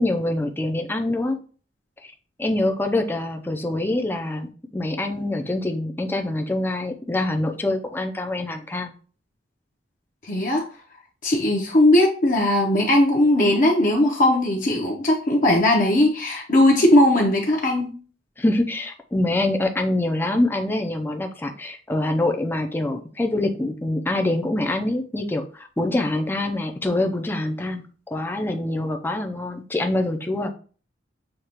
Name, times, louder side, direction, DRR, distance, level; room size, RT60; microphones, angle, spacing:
voice 1, 0.0-1.4 2.4-8.9 18.4-30.5, left 1 dB, 10° left, 4 dB, 0.4 m, -25 dB
voice 2, 10.2-10.6 11.2-17.9, left 1 dB, 45° left, -1 dB, 0.7 m, -18 dB
6.5 x 2.3 x 2.9 m, 0.40 s
head